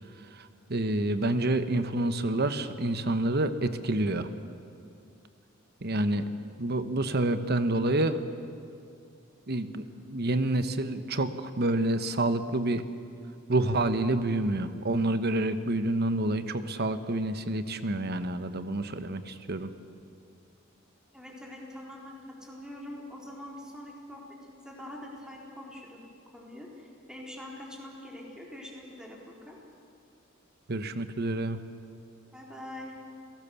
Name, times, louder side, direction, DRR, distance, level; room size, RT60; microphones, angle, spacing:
voice 1, 0.3-4.3 5.8-6.2 6.6-8.2 9.5-12.9 13.5-19.7 30.7-31.6, right 2 dB, 55° right, 10 dB, 1.1 m, -28 dB
voice 2, 21.1-26.0 26.3-29.6 32.3-32.9, left 1 dB, 5° right, -2 dB, 4.0 m, -44 dB
29.5 x 18.0 x 7.1 m, 2.4 s
head